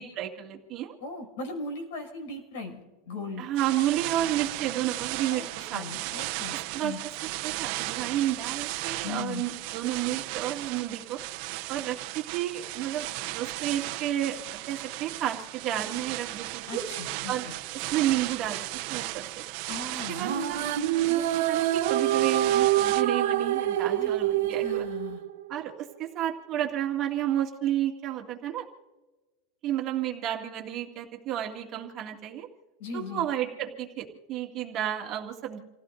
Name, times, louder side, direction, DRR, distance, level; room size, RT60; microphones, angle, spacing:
voice 1, 0.0-0.9 3.4-6.1 6.7-7.0 7.4-11.2 11.7-16.8 17.3-17.5 17.9-19.4 20.1-20.7 21.1-24.9 25.5-28.7 29.6-32.5 32.9-35.6, right 12 dB, 30° right, 1 dB, 2.2 m, -31 dB
voice 2, 1.0-3.5 5.3-5.4 5.7-7.0 9.0-9.5 16.7-17.5 19.7-20.3 24.0-24.1 24.6-25.2 32.8-33.3, left 3 dB, 70° left, 3 dB, 6.1 m, -38 dB
sound 1, 3.5-23.0, right 18 dB, 50° right, 0.8 m, -36 dB
sound 2, 20.1-25.6, right 12 dB, 90° right, 1.2 m, -26 dB
29.5 x 16.5 x 2.6 m, 1.2 s
supercardioid pair, 165°, 0 cm